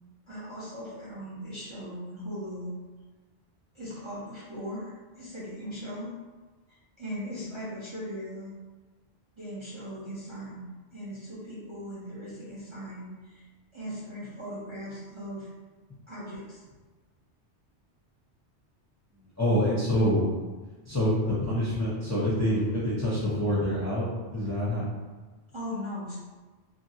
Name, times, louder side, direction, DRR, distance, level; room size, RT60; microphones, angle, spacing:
voice 1, 0.3-2.7 3.7-6.2 6.7-8.5 9.4-13.5 13.7-15.5 16.1-16.6 25.5-26.2, equal, 30° right, -8 dB, 0.6 m, -39 dB
voice 2, 19.4-20.3 20.9-24.1 24.3-24.8, equal, 20° left, -9 dB, 0.6 m, -26 dB
2.9 x 2.7 x 2.7 m, 1.3 s
omnidirectional pair, 1.2 m